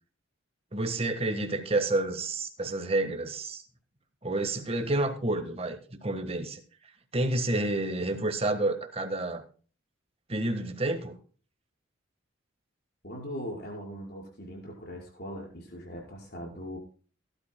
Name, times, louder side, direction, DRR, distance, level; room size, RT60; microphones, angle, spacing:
voice 1, 0.7-3.6 4.2-6.6 7.1-9.4 10.3-11.2, right 2 dB, 30° right, 7 dB, 1.4 m, -29 dB
voice 2, 13.0-16.8, equal, 50° left, 0 dB, 5.2 m, -40 dB
18.0 x 12.0 x 2.2 m, 0.40 s
head